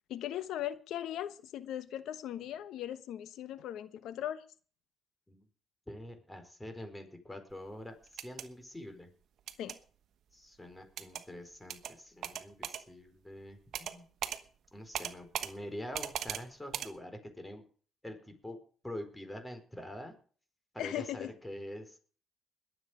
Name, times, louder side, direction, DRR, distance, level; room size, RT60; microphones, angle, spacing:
voice 1, 0.1-4.4 9.6-9.8 20.8-21.3, left 11 dB, 80° left, 1.1 m, -38 dB
voice 2, 5.9-9.1 10.3-14.1 14.7-17.6 18.0-18.6 18.8-20.1 20.7-22.0, left 1 dB, 10° left, 4.3 m, -45 dB
sound 1, 8.1-8.5 9.5-9.8 11.0-11.2 11.7-11.9 12.2-12.8 13.7-14.0 14.2-14.4 14.9-15.5 15.9-16.4 16.7-16.9, right 9 dB, 70° right, 1.3 m, -38 dB
21.0 x 8.1 x 5.1 m
cardioid pair, 90°, 0 cm